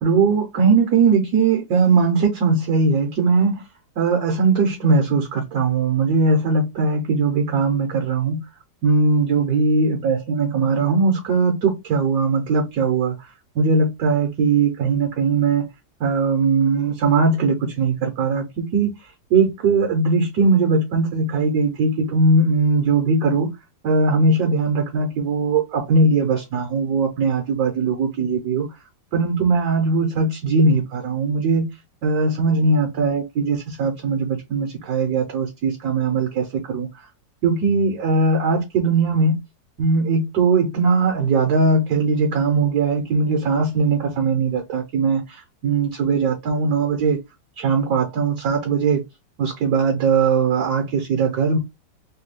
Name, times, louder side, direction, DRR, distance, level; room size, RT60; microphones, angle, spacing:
voice 1, 0.0-3.6 4.0-8.4 8.8-13.1 13.5-15.7 16.0-18.9 19.3-23.5 23.8-28.7 29.1-31.7 32.0-36.9 37.4-39.4 39.8-47.2 47.6-49.0 49.4-51.6, right 4 dB, 70° right, 1.4 m, -20 dB
3.5 x 2.3 x 3.2 m
omnidirectional pair, 1.8 m